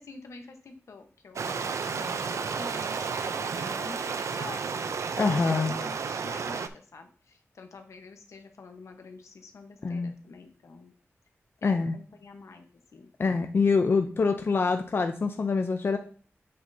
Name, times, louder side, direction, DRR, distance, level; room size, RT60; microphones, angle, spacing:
voice 1, 0.0-10.9 11.6-12.7 12.9-13.1, left 4 dB, 85° left, 5 dB, 1.0 m, -47 dB
Stream, 1.4-6.7, right 5 dB, 80° right, 0.5 m, -32 dB
voice 2, 5.2-5.7 9.8-10.1 11.6-12.0 13.2-16.0, left 4 dB, 50° left, 6 dB, 0.5 m, -25 dB
7.8 x 6.6 x 2.7 m, 0.44 s
wide cardioid pair, 110°, 5 cm